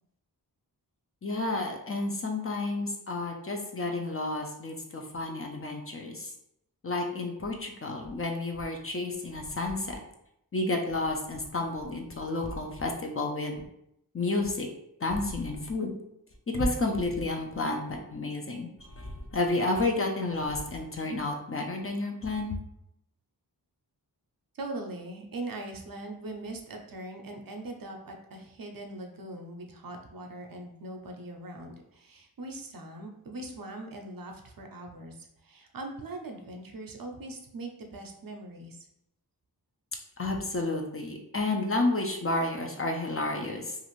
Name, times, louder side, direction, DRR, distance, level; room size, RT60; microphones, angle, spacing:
voice 1, 1.2-6.3 6.8-10.0 10.5-13.6 14.1-14.7 15.0-15.9 16.5-22.6 40.2-43.8, left 2 dB, 35° left, 2 dB, 0.5 m, -31 dB
voice 2, 24.5-38.9, right 2 dB, 60° right, 3 dB, 0.5 m, -41 dB
2.5 x 2.5 x 3.0 m, 0.78 s
wide cardioid pair, 55°, 39 cm